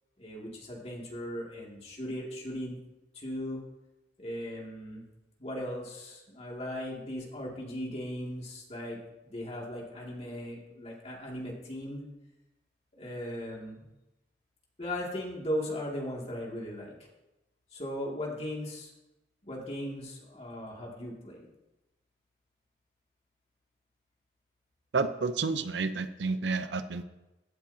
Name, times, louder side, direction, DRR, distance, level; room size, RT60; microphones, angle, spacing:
voice 1, 0.2-2.8 3.1-3.6 4.2-5.0 5.4-12.1 12.9-13.8 14.8-16.9 17.7-18.9 19.4-21.5, left 1 dB, 35° left, -2 dB, 2.4 m, -38 dB
voice 2, 24.9-27.0, right 4 dB, 90° right, 11 dB, 0.7 m, -30 dB
15.5 x 8.8 x 2.8 m, 0.96 s
head